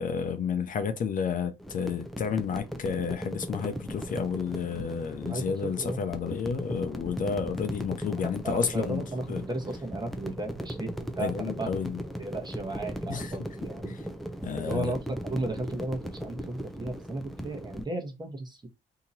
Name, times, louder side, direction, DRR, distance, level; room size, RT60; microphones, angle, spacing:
voice 1, 0.0-9.4 11.2-12.0 13.1-13.3 13.9-14.0 14.4-14.9, left 6 dB, 50° left, 0.6 m, -31 dB
sound 1, 1.6-17.8, equal, ahead, 0.6 m, -38 dB
voice 2, 5.3-6.0 8.2-11.7 12.2-13.9 14.6-18.7, right 2 dB, 25° right, 1.2 m, -35 dB
2.9 x 2.8 x 3.9 m
supercardioid pair, 75°, 18 cm